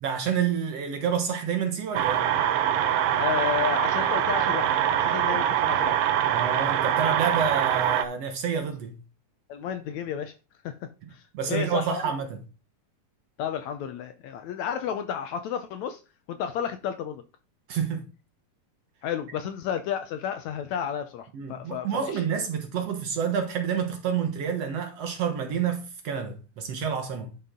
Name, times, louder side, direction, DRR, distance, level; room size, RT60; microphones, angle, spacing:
voice 1, 0.0-2.3 6.3-9.0 11.3-12.4 17.7-18.0 21.3-27.3, right 7 dB, 60° right, 2.0 m, -28 dB
sound 1, 1.9-8.0, right 10 dB, 90° right, 1.3 m, -24 dB
voice 2, 3.2-6.0 9.5-10.3 10.6-10.7 11.1-12.1 13.4-16.0 16.3-17.2 19.0-22.2, left 9 dB, 75° left, 1.8 m, -32 dB
11.0 x 5.9 x 3.7 m
omnidirectional pair, 3.8 m